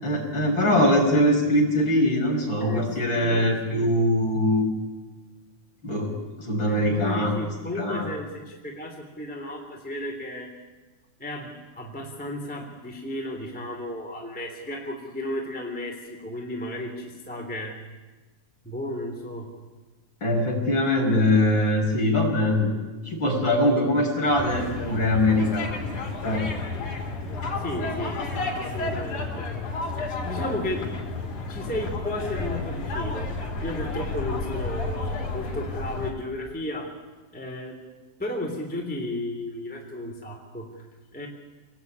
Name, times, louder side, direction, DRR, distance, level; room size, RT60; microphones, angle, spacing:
voice 1, 0.0-4.6 5.8-6.1 6.4-7.4 7.7-8.1 20.2-22.8 23.1-25.9 26.2-26.4, left 1 dB, 35° left, -1 dB, 6.6 m, -22 dB
voice 2, 2.6-3.9 6.7-10.5 11.2-17.8 18.6-19.5 27.6-28.2 28.6-29.5 29.9-30.9 31.5-33.3 33.6-36.9 37.3-37.8 38.2-40.7 41.1-41.3, left 1 dB, 5° left, 0 dB, 3.1 m, -34 dB
sound 1, 24.3-36.1, left 3 dB, 65° left, 5.0 m, -31 dB
28.0 x 19.5 x 9.6 m, 1.3 s
omnidirectional pair, 3.7 m